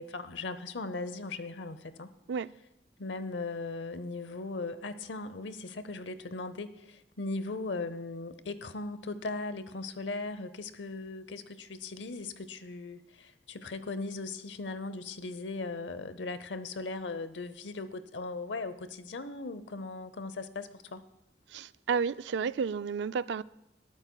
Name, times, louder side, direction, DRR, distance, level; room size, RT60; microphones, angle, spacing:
voice 1, 0.0-2.1 3.0-21.1, left 3 dB, 85° left, 13 dB, 0.7 m, -38 dB
voice 2, 21.5-23.4, right 6 dB, 75° right, 16 dB, 0.3 m, -31 dB
20.0 x 12.5 x 2.3 m, 0.88 s
head